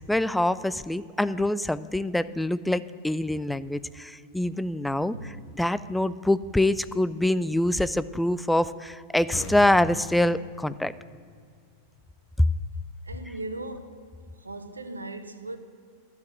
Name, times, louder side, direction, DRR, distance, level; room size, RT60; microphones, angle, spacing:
voice 1, 0.0-5.1 5.6-10.9, left 1 dB, 5° left, 0.3 m, -25 dB
voice 2, 5.1-5.5 13.0-14.0 14.4-15.6, right 2 dB, 80° right, 0.7 m, -38 dB
sound 1, 9.3-12.7, left 4 dB, 30° left, 1.4 m, -40 dB
11.5 x 5.9 x 9.0 m
figure-of-eight pair, 90°, 0 cm